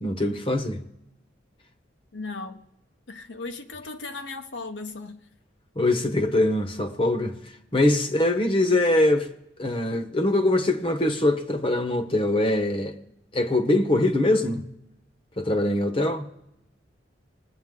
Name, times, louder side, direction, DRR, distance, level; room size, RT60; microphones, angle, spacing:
voice 1, 0.0-0.8 5.8-7.4 7.7-9.3 9.6-13.0 13.3-14.7 15.4-16.2, left 1 dB, 30° left, 0.9 m, -23 dB
voice 2, 2.1-2.7 3.1-5.3, left 3 dB, 80° left, 0.9 m, -37 dB
20.5 x 8.5 x 3.7 m
head